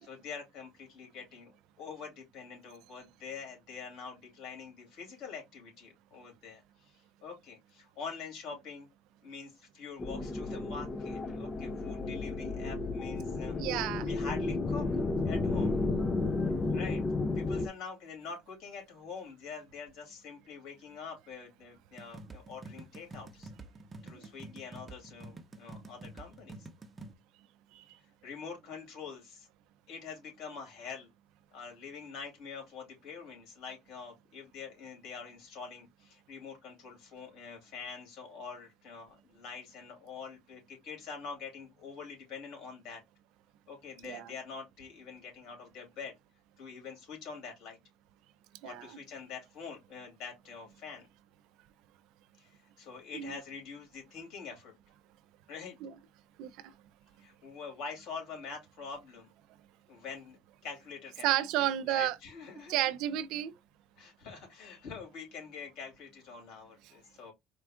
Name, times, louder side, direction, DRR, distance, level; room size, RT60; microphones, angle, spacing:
voice 1, 0.0-8.9 9.2-13.5 14.0-14.9 15.2-15.8 16.7-17.0 17.3-23.5 24.0-26.6 28.2-29.5 29.9-31.1 31.5-43.0 43.7-46.1 46.6-47.8 48.6-51.1 52.4-54.7 55.5-55.8 57.2-59.3 59.9-62.8 64.0-67.3, left 5 dB, 70° left, 2.8 m, -45 dB
sound 1, 10.0-17.7, left 3 dB, 25° left, 0.5 m, -32 dB
voice 2, 13.6-14.1 27.8-27.9 44.0-44.3 48.6-48.9 53.1-53.3 55.8-55.9 56.4-56.5 61.2-62.2 62.7-63.5, right 13 dB, 75° right, 0.4 m, -31 dB
sound 2, 22.0-27.1, right 2 dB, 20° right, 0.7 m, -48 dB
4.4 x 2.4 x 3.5 m
cardioid pair, 115°, 0 cm